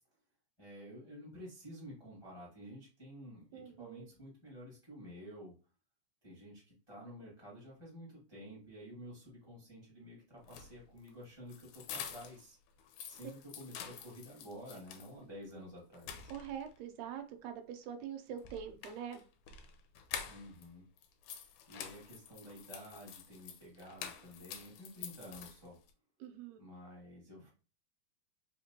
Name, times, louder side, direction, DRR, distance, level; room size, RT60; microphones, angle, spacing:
voice 1, 0.6-5.5 6.2-12.6 13.1-16.3 20.2-20.8 21.7-25.8 26.6-27.5, equal, 15° left, -5 dB, 1.2 m, -51 dB
voice 2, 3.5-4.1 16.3-19.2 26.2-26.6, right 8 dB, 80° right, 7 dB, 2.0 m, -44 dB
sound 1, 10.4-12.5 12.8-15.1 15.5-15.6 15.9-16.8 18.4-20.7 21.0-25.9, left 8 dB, 80° left, 1.9 m, -48 dB
4.8 x 3.0 x 2.8 m, 0.34 s
omnidirectional pair, 3.4 m